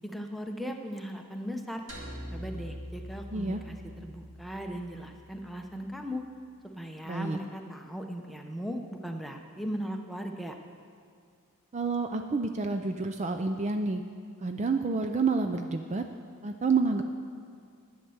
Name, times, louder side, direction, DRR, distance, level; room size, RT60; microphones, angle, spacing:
voice 1, 0.0-1.8 2.3-3.8 4.0-6.2 6.6-10.6, equal, ahead, 3 dB, 0.8 m, -38 dB
sound 1, 1.9-6.3, equal, 65° right, 2.4 m, -44 dB
voice 2, 3.3-3.6 7.0-7.4 11.7-14.0 14.4-16.0 16.4-17.0, right 4 dB, 30° right, 6 dB, 0.5 m, -29 dB
11.0 x 9.4 x 7.1 m, 2.2 s
head